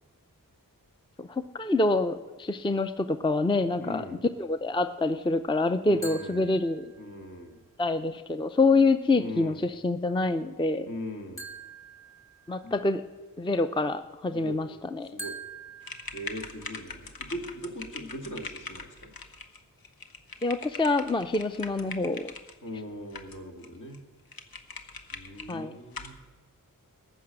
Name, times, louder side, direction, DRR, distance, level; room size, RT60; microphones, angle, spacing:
voice 1, 1.2-4.1 4.4-6.9 7.8-10.9 12.5-13.0 13.4-15.1 20.4-22.3 25.5-25.8, left 3 dB, 15° left, 10 dB, 0.4 m, -26 dB
voice 2, 3.8-4.2 5.8-6.6 7.0-7.6 9.2-9.6 10.9-11.5 12.6-12.7 14.3-14.6 15.0-15.4 16.1-19.1 22.6-24.0 25.1-26.1, equal, 60° left, 2 dB, 2.0 m, -40 dB
Metal gently hits the glass, 6.0-7.3 11.4-12.9 15.2-16.9, right 3 dB, 35° left, 2.4 m, -45 dB
sound 1, 15.8-22.5 23.1-23.7 23.9-24.0 24.3-25.5 25.9-26.2, left 4 dB, 85° left, 1.0 m, -42 dB
14.5 x 6.2 x 8.8 m, 1.2 s
wide cardioid pair, 80°, 35 cm